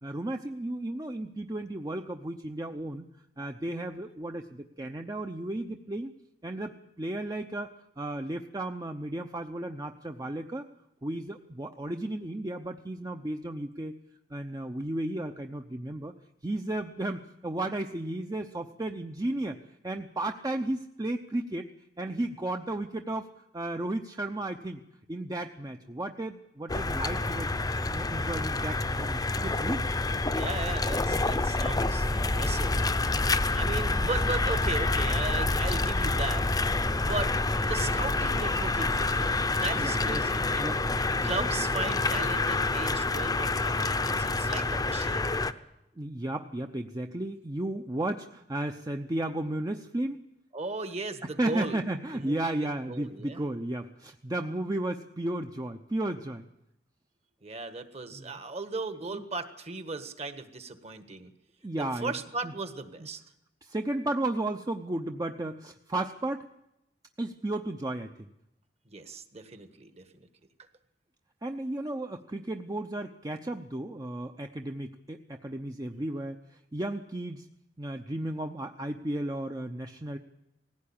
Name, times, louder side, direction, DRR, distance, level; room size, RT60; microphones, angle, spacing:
voice 1, 0.0-3.1 3.4-6.1 6.4-7.7 8.0-10.7 11.0-13.9 14.3-16.1 16.4-19.6 19.8-21.7 22.0-23.3 23.5-24.8 25.1-27.5 27.8-29.8 31.1-31.3 36.8-37.0 39.8-40.2 40.6-41.5 44.5-44.7 46.0-50.2 51.2-56.4 58.1-58.3 59.1-59.2 61.6-62.1 62.4-62.5 63.6-66.5 67.2-68.3 71.4-77.5 77.8-80.2, right 1 dB, 20° right, 6 dB, 0.7 m, -34 dB
sound 1, 26.7-45.5, left 2 dB, 20° left, 0.7 m, -28 dB
voice 2, 30.3-32.9 33.5-36.5 37.0-37.3 37.6-40.6 41.2-45.3 50.5-51.8 52.1-52.6 52.9-53.4 57.4-61.3 61.8-63.2 68.9-70.3, right 3 dB, 40° right, 9 dB, 1.5 m, -37 dB
19.0 x 16.0 x 8.8 m, 0.88 s
head